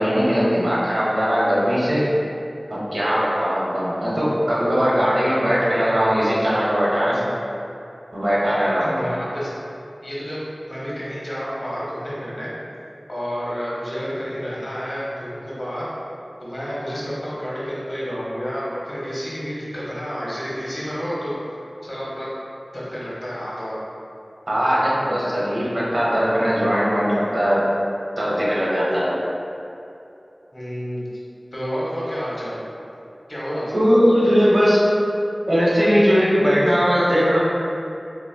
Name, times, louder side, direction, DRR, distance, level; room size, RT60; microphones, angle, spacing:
voice 1, 0.0-2.1 2.7-7.2 8.1-9.0 24.5-27.6 28.2-29.2 33.7-34.8 35.5-37.4, equal, 65° right, -7 dB, 1.0 m, -19 dB
voice 2, 8.8-9.5 10.0-12.5 13.1-15.9 16.4-21.3 21.8-22.3 22.7-23.8 30.5-31.0 31.5-32.6 33.3-33.8, equal, 55° left, -8 dB, 1.2 m, -30 dB
3.9 x 2.8 x 2.7 m, 2.7 s
wide cardioid pair, 45°, 0 cm